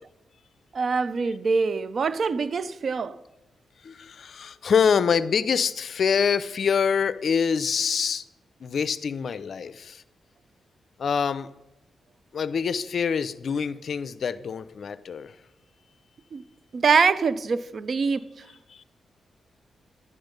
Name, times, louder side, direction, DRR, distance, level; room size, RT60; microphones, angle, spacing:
voice 1, 0.7-3.2 16.3-16.4 16.7-18.3, right 5 dB, 50° right, 0.6 m, -24 dB
voice 2, 3.8-8.2 8.6-10.0 11.0-11.5 12.3-15.4 18.7-18.8, left 6 dB, 60° left, 0.5 m, -25 dB
11.0 x 9.9 x 5.2 m
cardioid pair, 100°, 0 cm